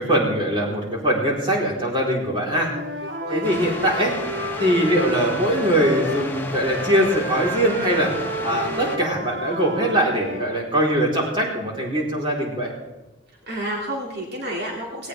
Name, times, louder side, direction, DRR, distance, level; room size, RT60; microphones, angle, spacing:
voice 1, 0.0-2.7 3.3-4.2 4.6-12.7, right 1 dB, 30° right, -2 dB, 3.9 m, -22 dB
Wind instrument woodwind instrument, 2.6-6.3 6.6-10.5, equal, 80° right, 2.0 m, -31 dB
voice 2, 2.7-3.5 13.5-15.1, right 1 dB, 60° right, -2 dB, 2.4 m, -31 dB
sound 1, 3.4-9.0, left 2 dB, 10° left, 1.2 m, -33 dB
18.5 x 18.0 x 3.5 m, 1.1 s
head